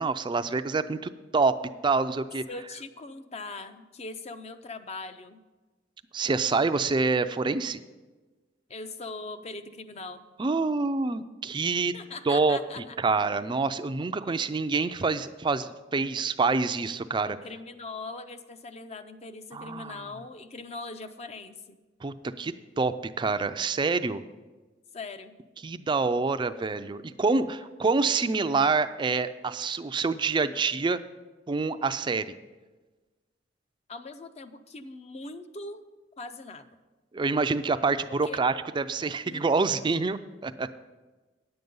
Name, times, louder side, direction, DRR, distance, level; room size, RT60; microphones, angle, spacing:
voice 1, 0.0-2.5 6.1-7.8 10.4-11.9 12.3-17.4 19.5-20.0 22.0-24.2 25.6-31.0 31.5-32.3 37.1-40.7, right 4 dB, 25° right, 11 dB, 0.4 m, -27 dB
voice 2, 2.5-5.4 8.7-10.2 11.9-13.0 17.3-21.8 24.9-25.3 33.9-35.8 36.2-36.8 38.2-38.4 39.3-39.5, left 3 dB, 35° left, 10 dB, 0.5 m, -41 dB
10.0 x 7.9 x 5.3 m, 1.2 s
head